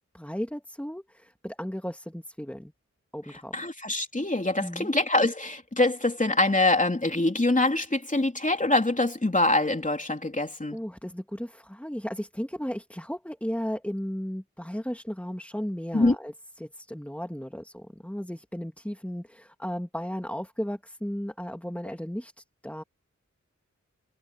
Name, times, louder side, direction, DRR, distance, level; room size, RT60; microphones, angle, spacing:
voice 1, 0.1-2.7 3.1-3.6 4.6-4.9 10.7-22.8, equal, 5° left, 2.9 m, -35 dB
voice 2, 3.5-10.8 15.9-16.2, left 2 dB, 25° left, 3.4 m, -24 dB
cardioid pair, 45°, 30 cm